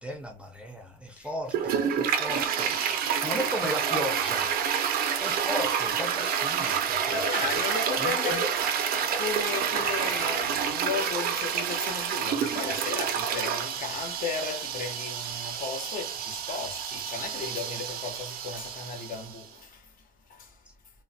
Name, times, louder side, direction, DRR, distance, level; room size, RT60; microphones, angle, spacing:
voice 1, 0.0-2.8 3.0-4.9 5.2-7.2 8.0-8.7, equal, 5° right, 0.5 m, -36 dB
Toilet flush, 1.5-19.4, right 8 dB, 65° right, 0.4 m, -29 dB
voice 2, 6.8-8.5 9.1-19.9 20.3-20.6, left 5 dB, 55° left, 0.9 m, -35 dB
3.1 x 2.1 x 2.6 m
cardioid pair, 110°, 17 cm